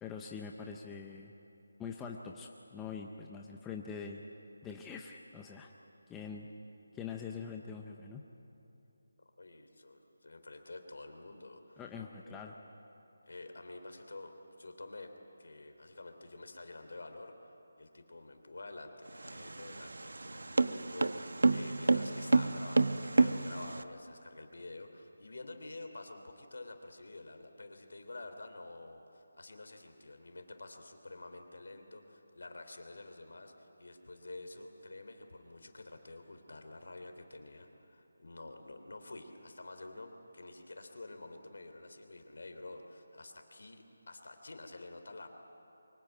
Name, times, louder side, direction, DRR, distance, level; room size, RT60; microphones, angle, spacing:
voice 1, 0.0-1.3 1.8-4.2 4.6-5.7 6.1-6.5 6.9-8.2 11.8-12.6, left 6 dB, 5° left, 1 dB, 0.5 m, -44 dB
voice 2, 9.4-11.8 12.2-12.4 13.3-15.1 15.4-45.3, left 2 dB, 65° left, 6 dB, 3.1 m, -49 dB
sound 1, 19.1-23.8, right 3 dB, 80° right, 1.0 m, -29 dB
24.0 x 22.5 x 9.1 m, 2.8 s
figure-of-eight pair, 180°, 0 cm